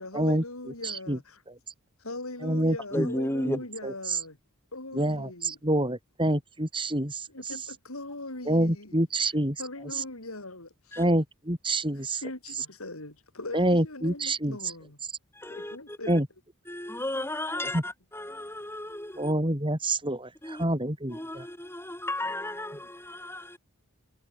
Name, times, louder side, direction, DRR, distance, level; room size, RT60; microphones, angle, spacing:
voice 1, 0.0-1.4 2.0-4.4 4.7-5.6 7.3-8.9 9.6-11.0 12.2-15.0 15.5-16.1, left 2 dB, 80° left, 7.1 m, -40 dB
voice 2, 0.8-1.2 2.4-3.1 3.4-4.2 4.9-7.3 8.5-9.6 9.9-10.0 11.0-12.2 13.5-14.6 16.1-16.3 17.7-17.8 19.2-21.5, right 1 dB, 25° right, 5.8 m, -27 dB
voice 3, 2.9-3.6 10.9-11.0 15.3-16.1 16.7-19.3 20.4-20.6 21.1-23.6, left 1 dB, 10° left, 6.0 m, -34 dB
head